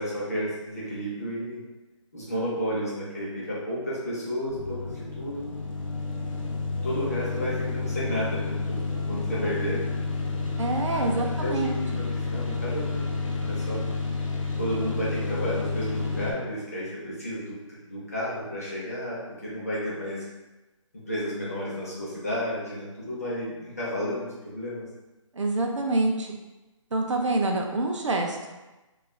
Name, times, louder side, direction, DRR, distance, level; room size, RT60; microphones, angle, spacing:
voice 1, 0.0-1.6 2.1-5.5 6.8-9.8 10.9-11.0 11.4-12.0 12.3-13.9 14.6-20.2 20.9-24.9, equal, 30° left, -7 dB, 0.6 m, -32 dB
sound 1, 4.5-16.3, left 4 dB, 80° left, 0.7 m, -30 dB
voice 2, 10.6-12.0 25.3-26.3 26.9-28.4, right 2 dB, 65° right, 2 dB, 0.5 m, -26 dB
3.1 x 2.3 x 2.2 m, 1.1 s
hypercardioid pair, 180°, 17 cm